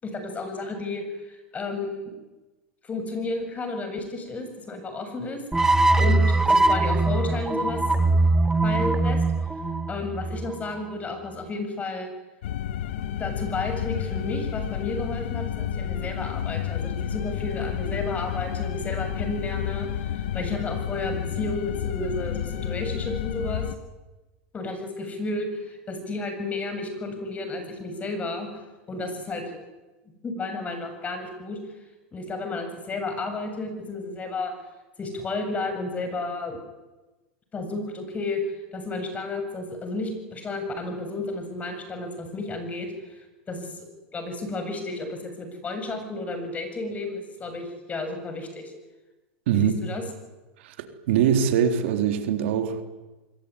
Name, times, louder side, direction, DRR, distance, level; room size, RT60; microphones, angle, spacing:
voice 1, 0.0-2.1 2.8-7.8 8.6-9.2 9.9-12.1 13.2-23.6 24.5-29.6 30.1-31.6 32.1-34.5 35.0-36.6 37.5-48.7 49.5-50.0, left 2 dB, 20° left, 6 dB, 7.5 m, -32 dB
sound 1, 5.5-10.7, right 2 dB, 5° right, 1.8 m, -21 dB
sound 2, 12.4-23.8, left 10 dB, 75° left, 1.6 m, -30 dB
voice 2, 50.6-52.8, right 8 dB, 70° right, 7 dB, 3.6 m, -23 dB
25.5 x 22.5 x 9.9 m, 1.1 s
supercardioid pair, 125°, 7 cm